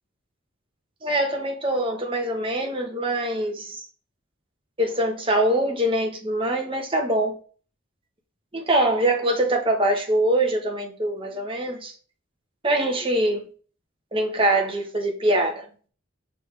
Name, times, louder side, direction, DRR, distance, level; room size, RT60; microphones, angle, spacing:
voice 1, 1.0-3.8 4.8-7.4 8.5-11.9 12.6-13.4 14.1-15.6, right 1 dB, 25° right, 1.4 m, -23 dB
6.0 x 4.9 x 3.5 m
head